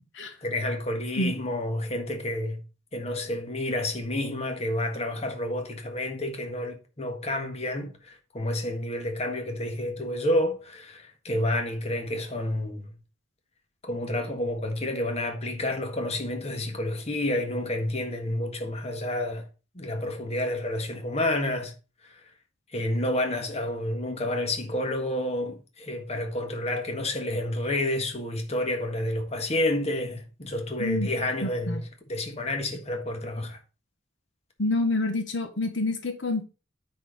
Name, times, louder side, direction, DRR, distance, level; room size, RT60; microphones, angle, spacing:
voice 1, 0.4-2.6 2.9-12.9 13.8-19.5 19.7-21.7 22.0-22.2 22.7-33.6, left 1 dB, 35° left, 1.5 m, -29 dB
voice 2, 31.4-31.8 34.6-36.5, left 2 dB, 70° left, 1.3 m, -27 dB
9.3 x 4.3 x 5.1 m
head